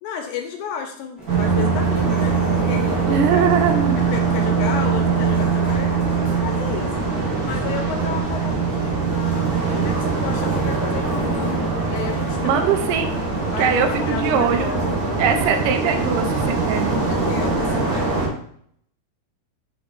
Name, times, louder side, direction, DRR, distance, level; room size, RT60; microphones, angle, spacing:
voice 1, 0.0-3.4 4.1-6.0 6.4-7.1 7.4-12.6 13.4-14.9 17.1-18.1, left 6 dB, 75° left, 5 dB, 2.0 m, -32 dB
sound 1, 1.2-17.4, right 1 dB, ahead, 1.1 m, -41 dB
sound 2, 1.3-18.3, right 4 dB, 40° right, 1.3 m, -22 dB
voice 2, 3.1-4.0 12.4-13.1 13.6-14.7 15.2-17.0, right 7 dB, 85° right, 6 dB, 2.2 m, -21 dB
5.3 x 3.6 x 5.1 m, 0.64 s
omnidirectional pair, 3.8 m